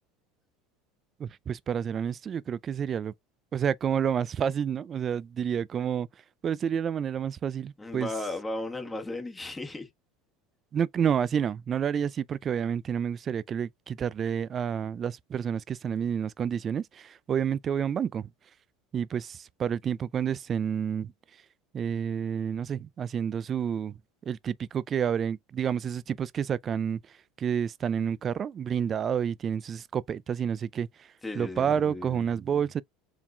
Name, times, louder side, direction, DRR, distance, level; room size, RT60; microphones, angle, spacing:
voice 1, 1.2-3.1 3.5-6.1 6.4-8.1 10.7-18.3 18.9-21.1 21.7-23.9 24.3-27.0 27.4-30.9 31.4-32.8, right 8 dB, 35° right, 0.3 m, -29 dB
voice 2, 7.8-9.9 31.2-32.2, left 2 dB, 15° left, 1.2 m, -35 dB
4.8 x 3.5 x 2.3 m
hypercardioid pair, 95°, 0 cm